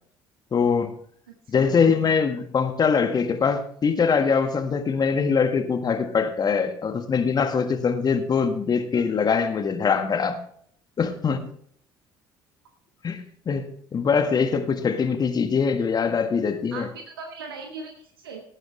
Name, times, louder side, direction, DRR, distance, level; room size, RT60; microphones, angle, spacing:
voice 1, 0.5-0.9 1.5-10.4 11.0-11.5 13.0-16.9, left 5 dB, 35° left, 8 dB, 1.6 m, -23 dB
voice 2, 16.7-18.4, right 4 dB, 75° right, 3 dB, 1.3 m, -39 dB
17.5 x 9.1 x 3.2 m, 0.63 s
figure-of-eight pair, 55°, 12 cm